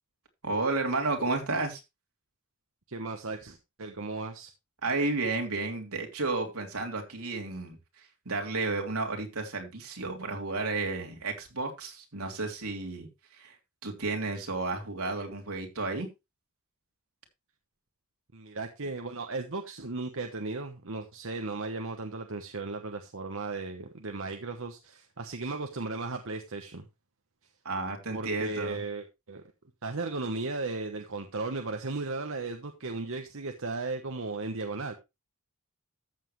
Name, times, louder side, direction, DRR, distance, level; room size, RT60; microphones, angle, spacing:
voice 1, 0.4-1.8 4.8-7.8 8.2-13.5 13.8-16.1 27.6-28.8, right 3 dB, 85° right, 2 dB, 3.1 m, -32 dB
voice 2, 2.9-4.5 18.3-26.8 28.1-29.4 29.8-34.9, right 3 dB, 65° right, 5 dB, 1.2 m, -36 dB
14.0 x 7.4 x 3.2 m, 0.24 s
head